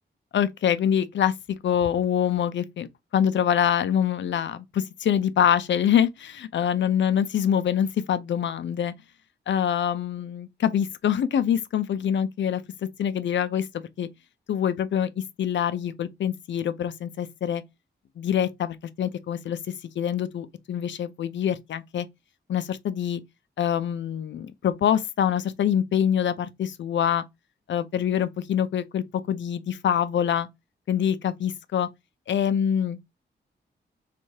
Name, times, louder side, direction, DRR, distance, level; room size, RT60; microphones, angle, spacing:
voice 1, 0.3-8.9 9.5-12.6 13.0-14.1 14.5-17.6 18.2-19.6 20.0-22.1 22.5-23.2 23.6-27.2 27.7-30.5 30.9-31.9 32.3-33.0, left 9 dB, 80° left, 0.7 m, -25 dB
4.7 x 3.4 x 2.8 m
wide cardioid pair, 120°, 19 cm